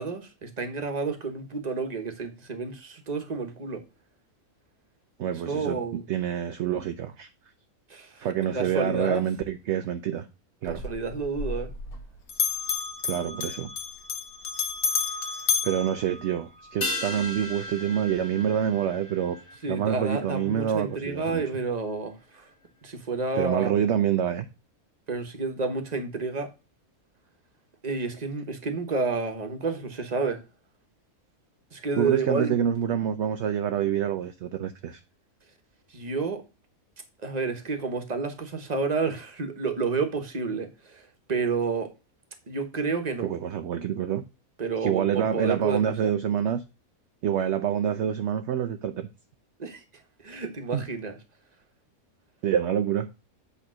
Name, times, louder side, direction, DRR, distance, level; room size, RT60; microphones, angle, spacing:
voice 1, 0.0-3.8 5.4-6.0 7.9-9.2 10.6-11.7 19.6-22.5 22.8-23.7 25.1-26.5 27.8-30.4 31.7-32.7 35.9-36.4 37.2-41.9 42.5-43.3 44.6-46.1 49.6-49.8 50.2-51.2, right 4 dB, 30° right, 1.2 m, -30 dB
voice 2, 5.2-5.8 6.1-7.3 8.2-10.3 10.6-10.8 13.0-13.7 15.6-19.4 19.7-21.4 23.4-24.5 32.0-35.0 43.2-44.2 44.8-46.6 47.2-49.1 50.7-50.8 52.4-53.1, right 9 dB, 65° right, 0.8 m, -27 dB
Bell, 10.7-12.0 12.3-16.8, left 6 dB, 90° left, 1.6 m, -31 dB
sound 1, 16.8-21.5 21.8-21.9, left 2 dB, 70° left, 1.9 m, -37 dB
8.2 x 3.5 x 6.1 m
omnidirectional pair, 1.5 m